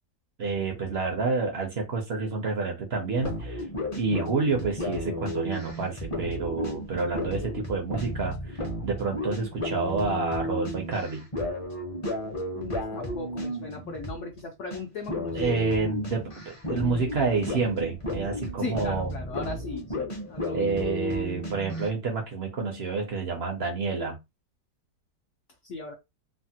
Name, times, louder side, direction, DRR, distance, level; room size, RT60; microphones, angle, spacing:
voice 1, 0.4-3.6 3.9-11.2 15.3-19.1 20.5-24.2, right 4 dB, 65° right, 2 dB, 0.6 m, -29 dB
sound 1, 3.1-14.4 14.7-14.8 15.1-21.9, left 1 dB, 40° left, 0.5 m, -33 dB
voice 2, 12.5-15.6 18.6-20.7 25.6-25.9, left 4 dB, 70° left, 2 dB, 0.7 m, -38 dB
3.3 x 2.1 x 2.7 m, 0.22 s
omnidirectional pair, 1.9 m